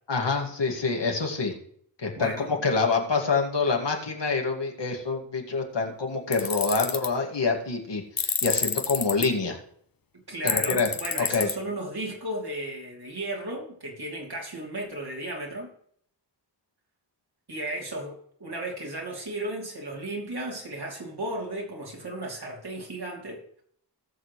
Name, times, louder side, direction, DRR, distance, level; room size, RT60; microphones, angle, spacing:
voice 1, 0.1-1.5 2.0-9.6 10.4-10.9 11.3-11.5, left 4 dB, 75° left, 1 dB, 2.2 m, -26 dB
voice 2, 2.2-2.7 5.8-5.9 10.1-15.7 17.5-23.4, right 1 dB, 60° right, -1 dB, 3.1 m, -35 dB
Tools, 6.3-7.1 8.2-9.3 10.5-11.5, left 6 dB, 50° left, 1.0 m, -27 dB
18.5 x 6.4 x 3.2 m, 0.64 s
wide cardioid pair, 75°, 43 cm